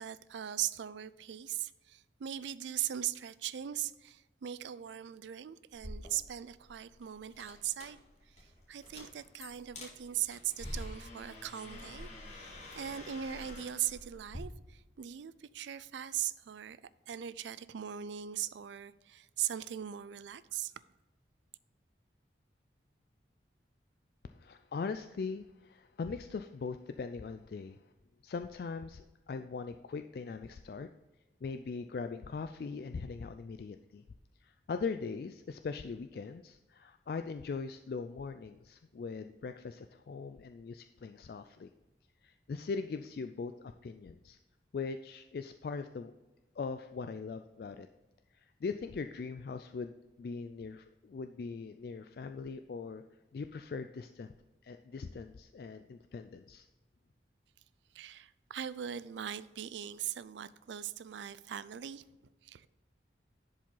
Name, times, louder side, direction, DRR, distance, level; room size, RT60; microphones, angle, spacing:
voice 1, 0.0-8.0 8.4-16.8 17.1-20.7 57.9-62.0 62.4-62.7, right 11 dB, 80° right, 0.4 m, -39 dB
sound 1, 5.7-14.4, left 1 dB, 40° left, 1.8 m, -48 dB
voice 2, 24.2-27.8 28.2-30.9 31.4-34.0 34.4-41.7 42.2-44.4 44.7-46.1 46.6-47.9 48.3-53.0 53.3-54.3 54.6-56.7, left 4 dB, 55° left, 0.3 m, -41 dB
11.0 x 5.1 x 3.9 m
head